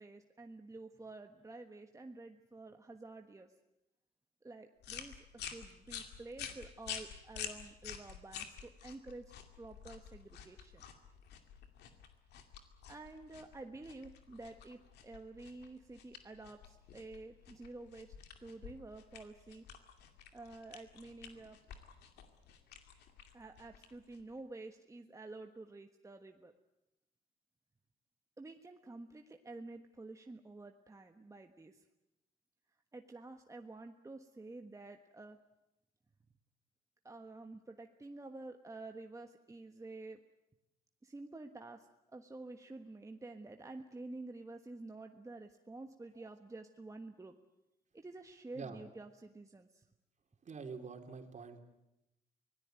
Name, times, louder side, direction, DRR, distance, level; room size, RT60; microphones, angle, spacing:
voice 1, 0.0-3.5 4.4-9.2 9.6-10.8 12.9-18.1 18.4-19.6 20.3-21.6 23.3-26.5 28.4-31.8 32.9-35.4 37.0-40.2 41.0-47.4 47.9-49.8, right 2 dB, 20° right, 5 dB, 1.4 m, -50 dB
sound 1, 4.8-24.4, left 8 dB, 85° left, 2.5 m, -50 dB
voice 2, 50.4-51.6, right 5 dB, 45° right, 4 dB, 3.5 m, -46 dB
24.5 x 18.5 x 9.2 m, 0.91 s
cardioid pair, 80°, 17 cm